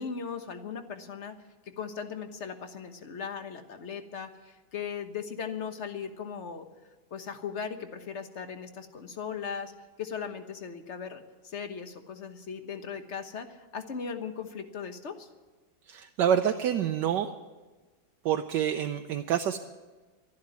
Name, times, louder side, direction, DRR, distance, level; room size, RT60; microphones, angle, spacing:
voice 1, 0.0-1.3 1.8-6.7 7.1-9.7 10.0-15.3, left 6 dB, 40° left, 7 dB, 1.4 m, -38 dB
voice 2, 15.9-17.3 18.2-19.6, right 9 dB, 75° right, 6 dB, 1.3 m, -27 dB
13.0 x 11.5 x 9.6 m, 1.3 s
omnidirectional pair, 2.0 m